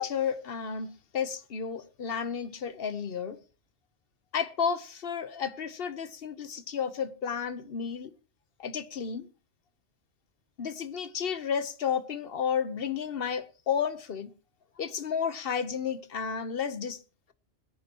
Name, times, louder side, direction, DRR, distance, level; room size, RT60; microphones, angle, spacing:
voice 1, 0.0-3.4 4.3-8.1 8.6-9.3 10.6-14.3 14.8-17.0, left 7 dB, 55° left, 1.1 m, -32 dB
21.0 x 10.5 x 3.0 m
omnidirectional pair, 1.2 m